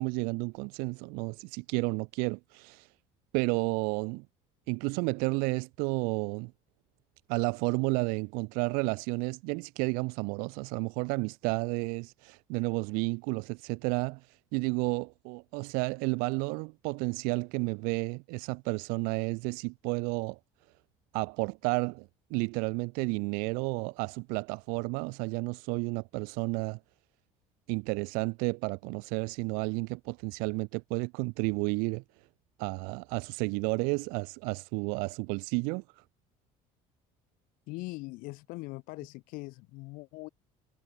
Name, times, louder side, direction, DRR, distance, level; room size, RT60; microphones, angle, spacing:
voice 1, 0.0-2.9 3.3-4.2 4.7-6.5 7.3-20.4 21.1-26.8 27.7-32.0 32.6-36.0, right 32 dB, 85° right, 0.6 m, -32 dB
voice 2, 37.7-40.3, left 23 dB, 75° left, 2.6 m, -41 dB
cardioid pair, 105°, 15 cm